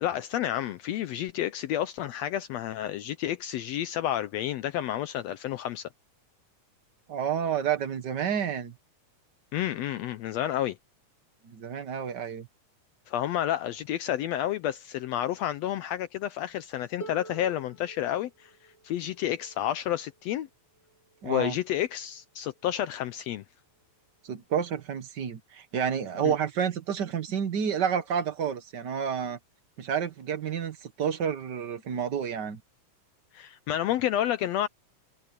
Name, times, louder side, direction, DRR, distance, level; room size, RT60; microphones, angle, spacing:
voice 1, 0.0-5.9 9.5-10.8 13.1-18.5 18.8-20.5 21.2-23.4 26.2-26.3 33.3-34.7, left 12 dB, 80° left, 1.5 m, -30 dB
voice 2, 7.1-8.7 11.4-12.5 21.2-21.6 24.2-29.4 29.8-32.6, right 8 dB, 75° right, 0.9 m, -30 dB
Harp, 17.0-22.8 23.8-23.9, right 2 dB, 35° left, 1.0 m, -49 dB
omnidirectional pair, 3.7 m